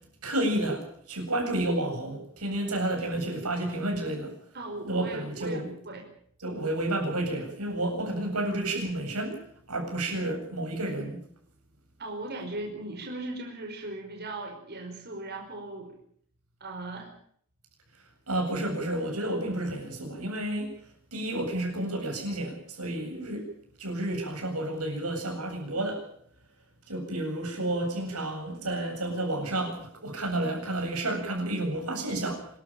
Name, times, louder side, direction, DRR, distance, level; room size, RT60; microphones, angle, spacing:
voice 1, 0.2-4.3 4.8-5.7 6.4-9.4 9.7-11.2 18.3-20.8 21.1-23.5 23.8-26.0 26.9-32.5, right 1 dB, 85° right, 3 dB, 8.0 m, -31 dB
voice 2, 4.5-6.0 12.0-15.9 16.6-17.1, right 2 dB, 45° right, 1 dB, 5.2 m, -38 dB
27.0 x 13.5 x 9.0 m, 0.63 s
head